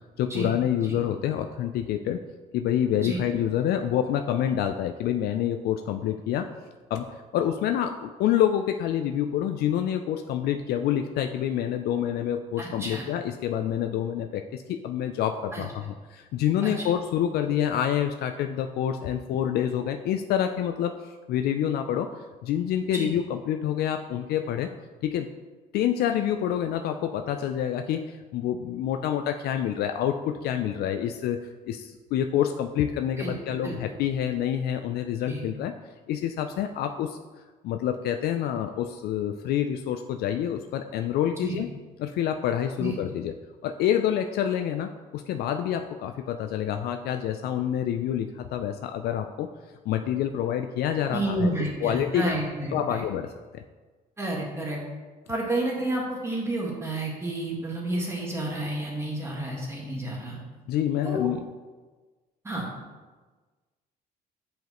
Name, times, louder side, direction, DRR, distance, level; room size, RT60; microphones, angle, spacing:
voice 1, 0.2-2.2 2.5-6.5 6.9-7.1 7.3-22.1 22.4-24.7 25.0-25.3 25.7-31.4 31.7-35.7 36.1-37.2 37.6-41.7 42.0-49.5 49.9-51.5 51.8-52.3 52.7-53.6 60.7-61.4, left 10 dB, 70° left, 7 dB, 0.4 m, -27 dB
voice 2, 12.6-13.0 15.5-15.6 16.6-16.8 22.9-23.1 33.2-33.3 33.6-33.7 35.3-35.4 41.4-41.6 42.8-43.0 51.1-53.0 54.2-54.8 55.3-60.4 61.0-61.3 62.4-62.6, right 1 dB, 15° right, -2 dB, 1.7 m, -30 dB
7.7 x 5.2 x 3.0 m, 1.3 s
cardioid pair, 110°, 17 cm